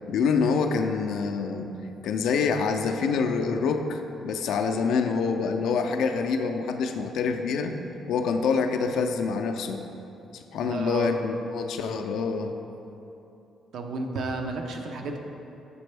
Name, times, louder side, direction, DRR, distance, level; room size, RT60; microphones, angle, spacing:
voice 1, 0.1-1.7 2.0-7.8 8.1-9.8 10.5-12.5, left 5 dB, 80° left, 6 dB, 0.3 m, -26 dB
voice 2, 10.6-11.1 13.7-15.2, right 3 dB, 70° right, 3 dB, 0.5 m, -32 dB
6.8 x 4.3 x 3.3 m, 2.9 s
cardioid pair, 90°, 0 cm